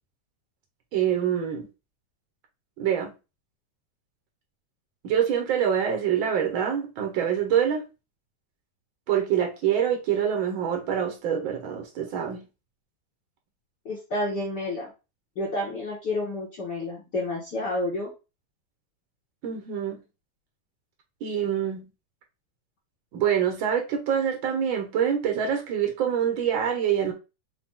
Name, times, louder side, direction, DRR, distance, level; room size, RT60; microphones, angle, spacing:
voice 1, 0.9-1.7 2.8-3.1 5.0-7.8 9.1-12.4 19.4-20.0 21.2-21.9 23.1-27.1, right 8 dB, 80° right, 1.1 m, -25 dB
voice 2, 13.8-14.9 15.3-18.1, left 1 dB, 50° left, 1.3 m, -30 dB
5.6 x 2.3 x 3.7 m
omnidirectional pair, 3.5 m